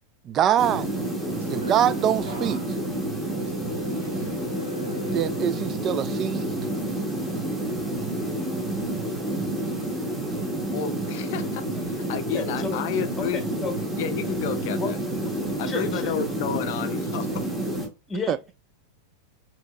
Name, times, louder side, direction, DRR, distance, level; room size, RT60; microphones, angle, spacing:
voice 1, 0.3-0.9 1.5-2.6 5.1-6.6 18.3-18.4, right 10 dB, 30° right, 0.3 m, -24 dB
sound 1, 0.6-17.9, right 1 dB, 10° right, 1.4 m, -29 dB
sound 2, 0.9-6.0 6.4-6.8, left 2 dB, 60° right, 1.3 m, -41 dB
voice 2, 10.7-13.4 14.0-15.0 15.6-17.5, left 8 dB, 50° left, 0.5 m, -31 dB
voice 3, 11.7-12.8 13.2-13.7 14.7-14.9 15.6-16.2 18.1-18.5, left 4 dB, 15° left, 1.0 m, -33 dB
6.1 x 2.9 x 2.3 m
figure-of-eight pair, 90°, 0 cm